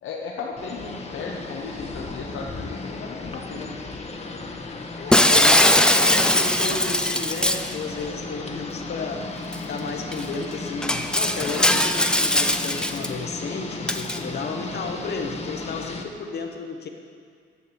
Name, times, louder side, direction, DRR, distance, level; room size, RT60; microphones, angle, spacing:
voice 1, 0.0-3.8, left 4 dB, 75° left, -1 dB, 1.1 m, -35 dB
sound 1, 0.6-16.0, left 3 dB, 30° left, 1.1 m, -35 dB
voice 2, 5.0-9.3 9.7-16.9, left 4 dB, 55° left, 3 dB, 1.2 m, -32 dB
Shatter, 5.1-7.7 9.5-9.6 10.1-10.2 10.8-13.1 13.9-14.2, left 1 dB, 5° left, 0.5 m, -20 dB
9.7 x 6.1 x 7.2 m, 2.1 s
cardioid pair, 90°, 20 cm